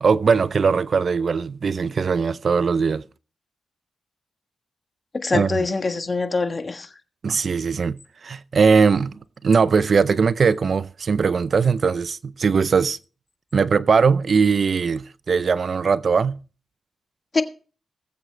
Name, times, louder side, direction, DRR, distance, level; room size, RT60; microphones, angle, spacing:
voice 1, 0.0-3.0 5.3-5.7 7.2-13.0 13.5-16.4, right 5 dB, 60° right, 0.5 m, -20 dB
voice 2, 5.2-6.9 17.3-17.4, left 3 dB, 40° left, 1.4 m, -23 dB
19.5 x 7.7 x 3.3 m
cardioid pair, 55°, 0 cm